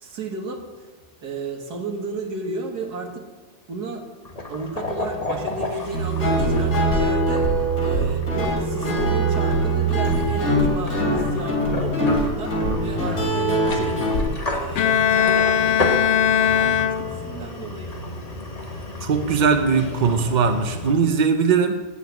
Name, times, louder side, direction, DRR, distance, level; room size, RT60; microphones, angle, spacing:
voice 1, 0.0-0.9 1.2-3.3 3.7-4.0 4.5-7.5 7.8-14.0 14.4-17.9, right 3 dB, 85° right, 3 dB, 2.1 m, -33 dB
sound 1, 4.2-20.9, left 2 dB, 25° left, 1.3 m, -33 dB
Guitar, 5.9-14.2, right 1 dB, 90° left, 3.4 m, -22 dB
Bowed string instrument, 14.8-17.5, left 9 dB, 60° left, 0.8 m, -20 dB
voice 2, 19.0-21.9, right 5 dB, 60° right, 7 dB, 0.4 m, -20 dB
9.2 x 8.3 x 8.1 m, 1.3 s
omnidirectional pair, 1.7 m